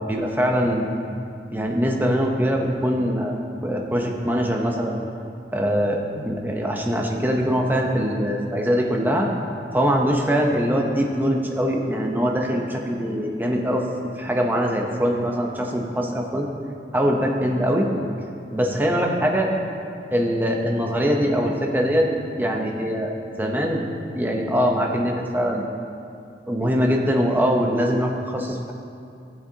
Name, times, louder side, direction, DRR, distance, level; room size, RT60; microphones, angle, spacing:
voice 1, 0.1-1.0 1.5-3.3 3.6-5.0 5.5-9.3 9.7-13.8 14.2-16.5 16.9-17.9 18.5-19.5 20.1-22.1 22.4-23.1 23.4-23.8 24.1-25.6 26.5-28.7, equal, 10° right, 0 dB, 0.8 m, -22 dB
14.5 x 7.6 x 2.9 m, 2.5 s
head